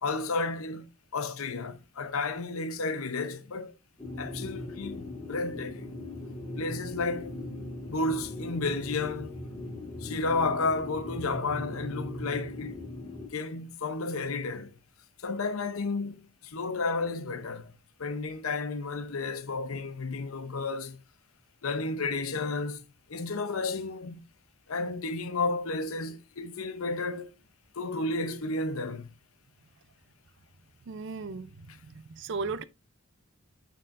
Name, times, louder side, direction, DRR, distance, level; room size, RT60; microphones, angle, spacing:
voice 1, 0.0-0.9 1.1-3.7 4.2-5.9 6.6-7.3 7.9-9.4 10.0-12.8 13.3-14.7 15.2-17.7 18.0-21.0 21.6-22.8 23.1-24.2 24.7-27.3 27.8-29.1, left 3 dB, 80° left, 0.8 m, -32 dB
sound 1, 4.0-13.3, left 1 dB, 20° left, 2.0 m, -39 dB
voice 2, 30.9-32.6, right 4 dB, 60° right, 0.5 m, -36 dB
9.3 x 4.3 x 2.5 m
head